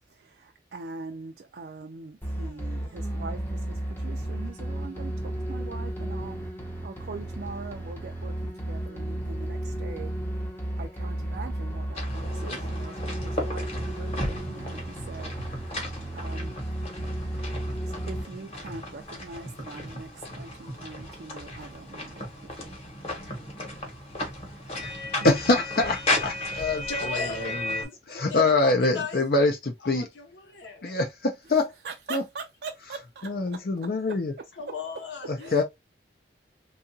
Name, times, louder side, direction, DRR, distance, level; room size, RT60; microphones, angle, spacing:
voice 1, 0.4-6.4 6.8-10.1 10.8-13.0 13.2-15.3 16.1-16.6 18.0-20.1 20.4-22.3 22.6-22.7 31.8-33.3 35.4-35.6, right 4 dB, 60° right, 0.4 m, -42 dB
sound 1, 2.2-18.2, right 1 dB, 10° left, 0.6 m, -33 dB
sound 2, 11.9-27.9, left 1 dB, 35° left, 1.0 m, -35 dB
voice 2, 25.2-30.1 30.8-31.7 32.1-32.2 33.2-34.3 35.3-35.6, left 3 dB, 55° left, 0.5 m, -25 dB
voice 3, 26.9-27.6 27.8-29.5 29.8-31.0 34.5-35.6, left 4 dB, 75° left, 0.8 m, -37 dB
2.8 x 2.3 x 2.6 m
head